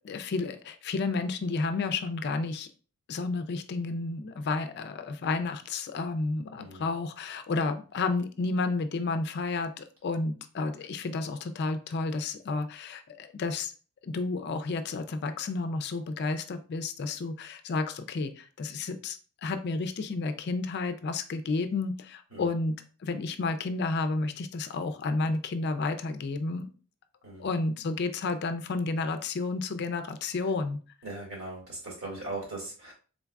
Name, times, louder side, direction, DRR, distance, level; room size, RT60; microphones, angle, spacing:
voice 1, 0.0-2.7 3.1-13.7 14.0-22.7 23.0-26.6 27.4-30.8, left 3 dB, 50° left, 9 dB, 0.4 m, -31 dB
voice 2, 6.6-6.9 22.3-22.5 27.2-27.5 31.0-32.9, right 2 dB, 75° right, -2 dB, 2.0 m, -39 dB
3.8 x 3.5 x 2.3 m, 0.38 s
head